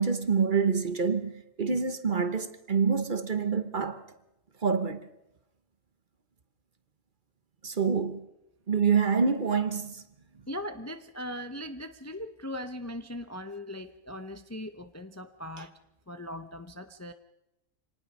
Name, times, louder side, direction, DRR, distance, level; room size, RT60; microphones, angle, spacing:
voice 1, 0.0-1.3 1.6-4.0 4.6-5.1 7.6-8.3 8.7-10.0, right 5 dB, 40° right, 1.1 m, -26 dB
voice 2, 10.5-15.7 16.1-17.1, left 1 dB, 15° left, 0.6 m, -39 dB
25.5 x 19.0 x 5.4 m
omnidirectional pair, 1.4 m